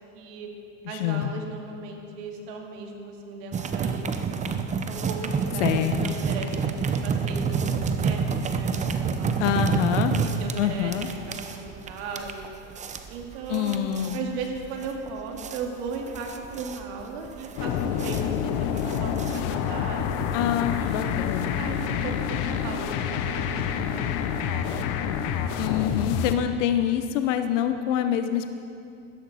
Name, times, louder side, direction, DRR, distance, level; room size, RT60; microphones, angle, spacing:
voice 1, 0.1-0.5 0.9-4.0 4.3-4.4 4.9-9.5 10.2-12.5 13.1-20.3 20.8-21.2 21.5-24.7, right 4 dB, 70° right, 2 dB, 2.3 m, -37 dB
voice 2, 0.9-1.3 5.6-5.9 9.4-10.2 10.6-11.1 13.5-14.2 20.3-21.6 25.6-28.5, left 10 dB, 75° left, 8 dB, 0.9 m, -26 dB
sound 1, 3.5-19.8, right 5 dB, 20° right, 0.7 m, -29 dB
sound 2, 17.6-26.3, left 8 dB, 55° left, 1.1 m, -28 dB
15.5 x 13.5 x 4.2 m, 2.6 s
supercardioid pair, 120°, 37 cm